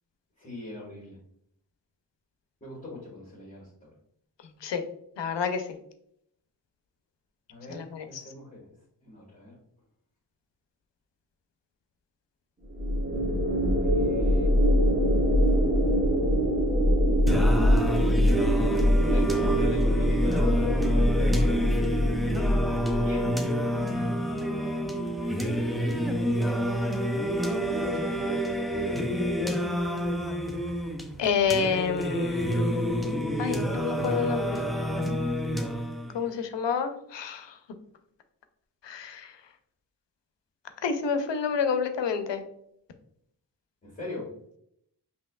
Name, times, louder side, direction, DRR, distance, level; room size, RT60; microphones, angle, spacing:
voice 1, 0.4-1.2 2.6-3.9 7.5-8.7 9.0-9.6 13.8-14.5 18.9-22.0 23.0-23.4 25.4-26.4 27.5-29.3 43.8-44.3, left 2 dB, 20° left, -6 dB, 1.5 m, -39 dB
voice 2, 5.2-5.6 7.7-8.2 31.2-32.9 33.4-34.6 36.1-37.5 38.8-39.3 40.8-42.4, left 6 dB, 85° left, 8 dB, 0.6 m, -29 dB
sound 1, 12.7-23.2, equal, 20° right, 0.9 m, -23 dB
Singing, 17.3-36.3, equal, ahead, 0.3 m, -28 dB
5.4 x 2.9 x 2.3 m, 0.72 s
wide cardioid pair, 85°, 43 cm